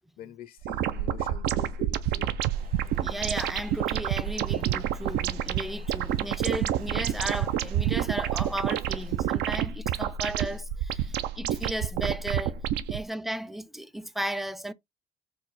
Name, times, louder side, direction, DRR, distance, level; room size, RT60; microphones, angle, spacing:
voice 1, 0.2-2.4, left 9 dB, 60° left, 0.5 m, -45 dB
sound 1, 0.6-13.0, right 10 dB, 80° right, 0.5 m, -29 dB
sound 2, 2.5-9.6, right 5 dB, 60° right, 1.6 m, -52 dB
voice 2, 3.0-12.6 12.9-14.7, right 1 dB, ahead, 0.3 m, -35 dB
4.7 x 2.2 x 4.0 m
cardioid pair, 110°, 17 cm